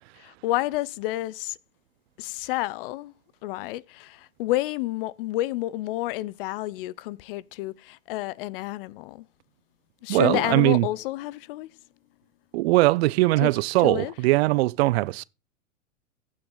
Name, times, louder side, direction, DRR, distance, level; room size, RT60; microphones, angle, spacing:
voice 1, 0.2-1.6 2.2-3.1 3.4-9.2 10.0-11.7 13.4-13.5 13.8-14.1, left 17 dB, 45° left, 0.4 m, -30 dB
voice 2, 10.1-10.9 12.5-15.2, right 20 dB, 50° right, 0.5 m, -21 dB
16.0 x 6.2 x 3.8 m
hypercardioid pair, 105°, 40 cm